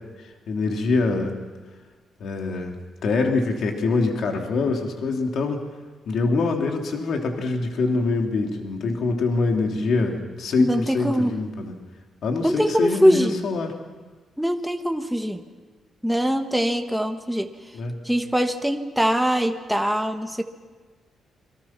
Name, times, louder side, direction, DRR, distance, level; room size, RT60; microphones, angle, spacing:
voice 1, 0.5-1.3 2.2-2.7 3.0-5.6 6.1-11.7 12.2-13.7 17.7-18.0, left 3 dB, 60° left, 2 dB, 3.2 m, -24 dB
voice 2, 10.6-11.4 12.4-13.4 14.4-15.4 16.0-17.5 18.0-20.4, equal, ahead, 5 dB, 1.3 m, -22 dB
28.5 x 24.0 x 6.0 m, 1.4 s
cardioid pair, 150°, 0 cm